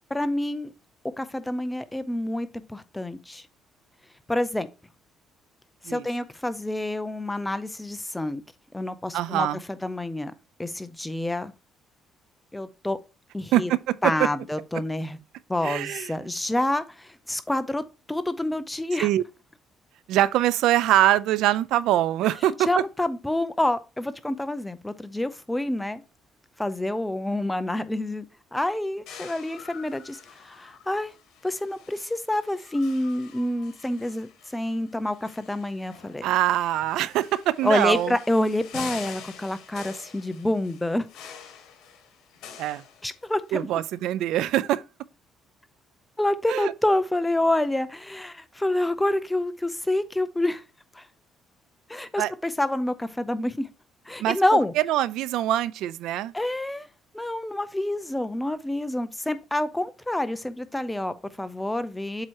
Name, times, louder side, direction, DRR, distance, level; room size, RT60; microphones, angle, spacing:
voice 1, 0.1-0.7 1.2-3.5 4.3-4.7 5.9-8.4 8.7-10.3 10.6-11.5 12.5-13.0 13.3-13.7 14.0-15.2 15.5-19.1 22.7-26.0 26.6-28.3 28.5-31.1 31.4-36.3 37.6-41.1 43.0-43.8 46.2-50.6 50.9-51.1 51.9-53.7 54.1-54.7 56.3-56.9 57.1-62.3, left 1 dB, 5° left, 0.5 m, -27 dB
voice 2, 9.1-9.6 13.5-14.0 15.6-16.1 19.0-19.2 20.1-22.8 36.2-38.1 42.6-42.8 43.5-44.8 46.5-46.7 52.2-52.3 54.2-54.4 54.8-56.3, right 13 dB, 80° right, 0.4 m, -23 dB
sound 1, 29.1-43.5, left 8 dB, 80° left, 1.6 m, -46 dB
7.5 x 2.9 x 4.6 m
cardioid pair, 130°, 0 cm